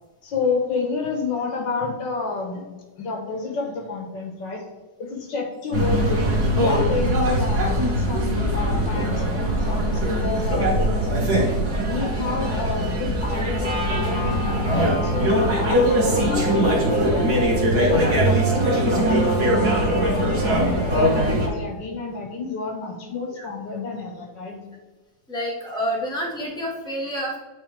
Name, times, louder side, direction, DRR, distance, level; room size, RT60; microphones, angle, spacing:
voice 1, 0.2-2.6 3.0-4.6 5.0-11.4 11.9-17.5 17.9-24.6, left 4 dB, 85° left, 2 dB, 2.0 m, -29 dB
sound 1, 5.7-21.5, right 1 dB, 65° right, 2.0 m, -21 dB
voice 2, 17.8-18.2 23.4-23.5 25.3-27.4, equal, 5° left, -3 dB, 1.3 m, -29 dB
8.8 x 4.0 x 3.5 m, 1.2 s
omnidirectional pair, 1.9 m